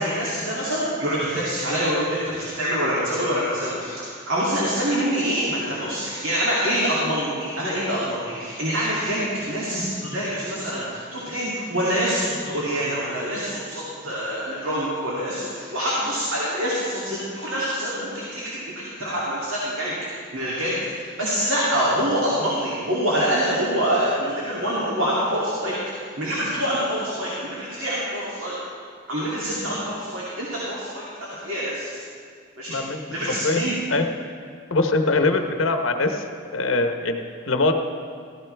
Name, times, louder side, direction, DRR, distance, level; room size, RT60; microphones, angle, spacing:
voice 1, 0.0-19.9 20.3-25.8 26.2-28.5 29.1-32.0 32.6-32.8 33.1-33.8, equal, 70° right, -7 dB, 2.6 m, -25 dB
voice 2, 32.7-33.0 33.4-33.6 33.9-34.1 34.7-36.2 36.5-37.7, left 3 dB, 75° left, 5 dB, 0.9 m, -22 dB
15.5 x 14.0 x 3.3 m, 2.1 s
head